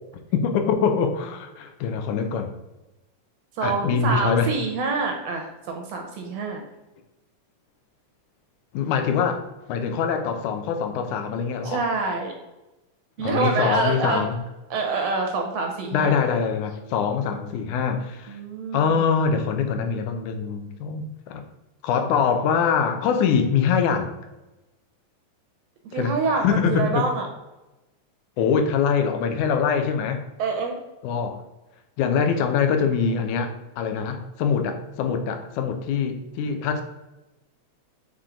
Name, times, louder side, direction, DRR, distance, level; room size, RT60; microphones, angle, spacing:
voice 1, 0.3-2.5 3.6-4.5 8.7-9.4 9.7-11.9 13.2-14.4 15.9-18.4 18.7-21.4 21.8-24.1 25.9-27.1 28.4-30.2 31.0-31.4 32.0-36.8, left 6 dB, 80° left, 6 dB, 2.1 m, -24 dB
voice 2, 3.6-6.6 11.6-12.3 13.2-14.3 14.7-16.2 18.3-19.1 25.9-27.3 30.4-30.8, right 4 dB, 70° right, 3 dB, 1.8 m, -26 dB
6.0 x 3.8 x 4.9 m, 1.0 s
omnidirectional pair, 3.5 m